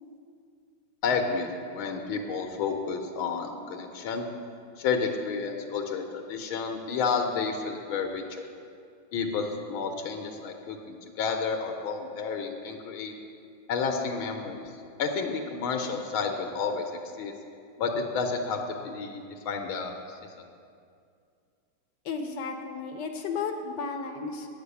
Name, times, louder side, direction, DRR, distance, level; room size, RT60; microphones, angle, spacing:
voice 1, 1.0-4.3 4.8-8.5 9.1-13.1 13.7-14.6 15.0-17.3 17.8-20.5, left 5 dB, 85° left, 4 dB, 1.6 m, -31 dB
voice 2, 22.0-24.5, left 5 dB, 65° left, 5 dB, 1.2 m, -33 dB
9.4 x 6.7 x 8.2 m, 2.4 s
omnidirectional pair, 2.3 m